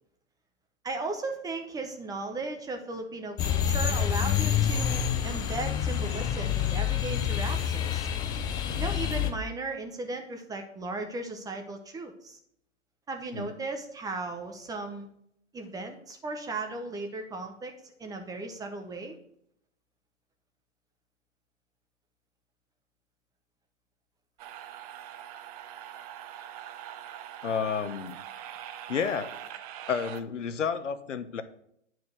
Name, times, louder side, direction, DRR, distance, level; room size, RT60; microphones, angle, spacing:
voice 1, 0.8-8.1 8.7-12.4 13.1-15.1 15.5-19.2, right 3 dB, 10° right, 5 dB, 0.9 m, -36 dB
sound 1, 3.4-9.3, left 9 dB, 10° left, 0.4 m, -27 dB
sound 2, 24.4-30.2, right 11 dB, 35° right, 0.7 m, -43 dB
voice 2, 27.4-28.2 28.9-29.3 29.9-31.4, left 6 dB, 75° left, 11 dB, 1.1 m, -30 dB
9.5 x 4.7 x 6.4 m, 0.71 s
hypercardioid pair, 125°, 36 cm